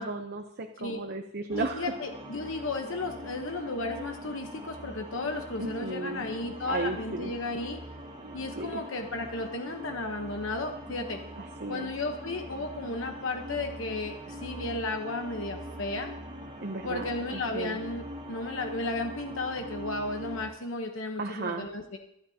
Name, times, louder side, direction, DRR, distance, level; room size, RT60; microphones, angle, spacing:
voice 1, 0.0-1.9 5.6-6.3 6.7-7.3 8.2-8.8 11.4-11.9 16.6-17.8 21.2-21.7, right 3 dB, 45° right, 4 dB, 0.8 m, -35 dB
voice 2, 1.5-7.8 8.3-11.2 11.7-16.1 16.8-22.0, left 2 dB, 60° left, 4 dB, 1.0 m, -34 dB
sound 1, 1.5-20.5, equal, 25° right, 2.2 m, -42 dB
25.5 x 9.1 x 2.9 m, 0.80 s
head